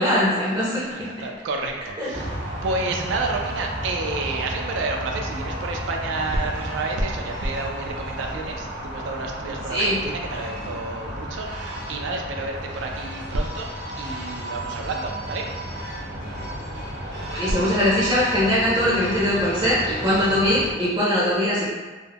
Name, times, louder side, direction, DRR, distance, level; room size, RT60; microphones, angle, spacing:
voice 1, 0.0-1.1 2.0-2.4 9.7-10.0 17.3-21.6, left 1 dB, 25° right, -8 dB, 0.5 m, -21 dB
voice 2, 0.9-2.4 2.6-13.7 14.0-15.5, right 2 dB, 75° right, 2 dB, 0.3 m, -30 dB
sound 1, 2.1-20.7, right 1 dB, 60° right, 0.7 m, -32 dB
2.3 x 2.1 x 3.4 m, 1.3 s
head